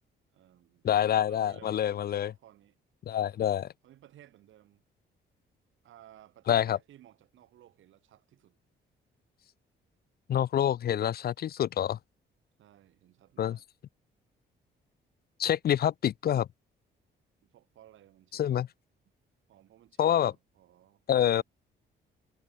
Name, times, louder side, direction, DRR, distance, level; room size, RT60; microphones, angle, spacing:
voice 1, 0.3-0.9 1.2-2.8 3.3-3.5 3.8-4.8 5.8-8.6 12.6-13.6 17.4-18.4 19.5-21.4, right 12 dB, 75° right, 5.0 m, -57 dB
voice 2, 0.8-2.3 3.1-3.7 6.5-6.8 10.3-12.0 13.4-13.6 15.4-16.5 18.3-18.7 20.0-20.3 21.1-21.4, left 10 dB, 50° left, 0.5 m, -26 dB
cardioid pair, 90°, 20 cm